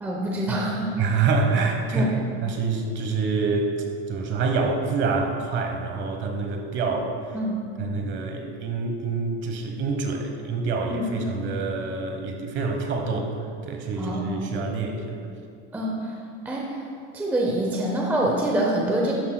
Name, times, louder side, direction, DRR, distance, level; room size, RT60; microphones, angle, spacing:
voice 1, 0.0-0.9 1.9-2.1 7.3-7.6 10.9-11.0 14.0-14.5 15.7-16.0 16.4-16.9 17.1-19.1, right 1 dB, 5° right, -2 dB, 0.5 m, -25 dB
voice 2, 1.0-3.7 4.1-7.1 7.8-13.3 13.6-15.2, right 4 dB, 35° right, 4 dB, 1.0 m, -26 dB
12.0 x 9.2 x 2.2 m, 2.4 s
supercardioid pair, 155°, 33 cm